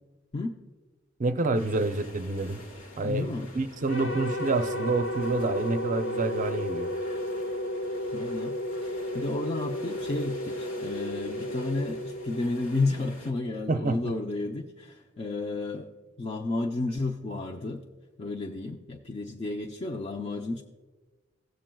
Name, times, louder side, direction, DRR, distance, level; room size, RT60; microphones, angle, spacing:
voice 1, 1.2-2.6 3.0-6.9 13.7-14.1, right 3 dB, 40° right, 9 dB, 0.5 m, -28 dB
sound 1, 1.5-13.3, left 1 dB, 70° left, 1.5 m, -47 dB
voice 2, 3.0-3.5 8.1-15.9 16.2-17.8 18.2-20.6, left 2 dB, 30° left, 2 dB, 0.5 m, -32 dB
sound 2, 3.9-13.2, left 1 dB, 90° left, 0.9 m, -33 dB
17.0 x 7.5 x 2.3 m, 1.3 s
head